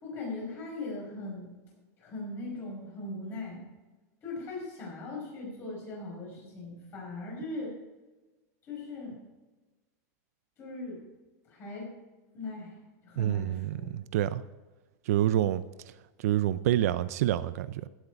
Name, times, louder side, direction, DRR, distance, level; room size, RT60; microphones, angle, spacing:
voice 1, 0.0-1.5 2.0-3.7 4.2-7.7 8.7-9.2 10.6-11.0 11.5-11.9 12.3-12.7 13.0-14.0, left 2 dB, 25° left, -2 dB, 5.0 m, -39 dB
voice 2, 13.2-14.4 15.1-15.6 16.2-17.9, right 12 dB, 60° right, 15 dB, 0.5 m, -27 dB
16.0 x 8.1 x 4.7 m, 1.2 s
supercardioid pair, 175°, 9 cm